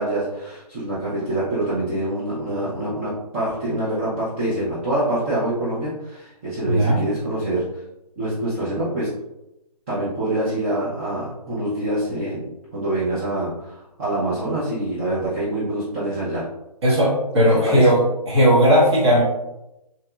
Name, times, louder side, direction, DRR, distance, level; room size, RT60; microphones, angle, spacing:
voice 1, 0.0-7.6 8.2-9.1 9.9-16.4 17.7-17.9, right 1 dB, 20° right, -10 dB, 0.4 m, -25 dB
voice 2, 6.7-7.0 16.8-19.2, equal, 40° right, -6 dB, 0.8 m, -17 dB
2.9 x 2.1 x 2.2 m, 0.92 s
hypercardioid pair, 155°, 21 cm